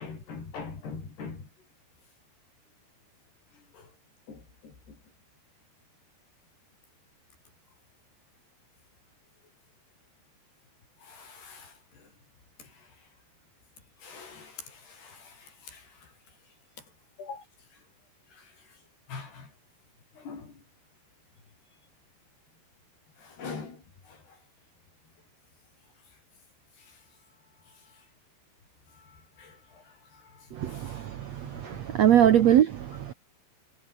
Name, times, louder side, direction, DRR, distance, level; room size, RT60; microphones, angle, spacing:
voice 1, 0.0-1.5 3.5-3.9 4.3-5.0 11.0-12.1 12.6-13.0 14.0-16.1 16.8-16.9 17.2-17.4 17.7-17.8 18.3-18.8 19.1-19.5 20.1-20.6 23.2-24.4 26.8-27.0 27.7-28.1 28.9-31.0 31.5-32.2, left 5 dB, 75° left, 8.8 m, -45 dB
voice 2, 30.5-33.1, right 10 dB, 70° right, 1.6 m, -23 dB
omnidirectional pair, 4.7 m